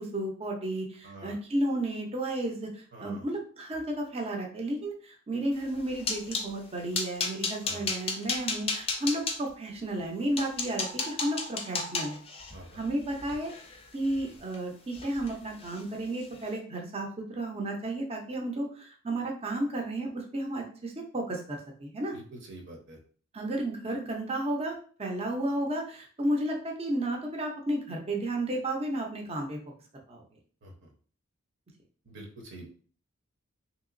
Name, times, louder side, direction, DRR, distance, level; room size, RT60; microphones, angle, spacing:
voice 1, 0.0-12.2 12.7-13.5 13.9-22.1 23.3-29.6 30.1-30.2, right 1 dB, 30° right, 1 dB, 0.6 m, -32 dB
voice 2, 1.0-1.4 2.9-3.2 7.6-7.9 12.5-12.8 22.1-23.0 30.6-30.9 32.0-32.7, right 1 dB, 55° right, 0 dB, 0.9 m, -46 dB
sound 1, 5.6-6.5 6.9-9.4 10.0-10.1 10.4-14.6 14.9-15.3 15.6-15.8 16.2-16.4, left 4 dB, 25° left, 0.5 m, -34 dB
3.4 x 2.8 x 2.5 m, 0.44 s
head